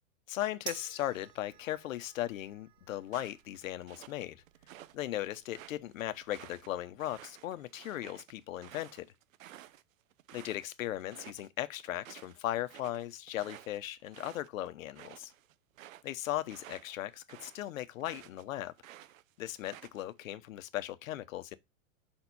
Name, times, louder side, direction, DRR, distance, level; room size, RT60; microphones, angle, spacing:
voice 1, 0.3-4.4 4.9-9.1 10.3-15.3 16.0-18.7 19.4-21.6, left 13 dB, 85° left, 1.0 m, -37 dB
sound 1, 0.7-7.2, right 11 dB, 25° right, 0.4 m, -52 dB
sound 2, 3.1-5.0 5.3-10.7 11.0-11.5 11.8-18.4 18.8-20.2, right 13 dB, 85° right, 0.8 m, -53 dB
5.7 x 4.5 x 4.1 m
supercardioid pair, 160°, 39 cm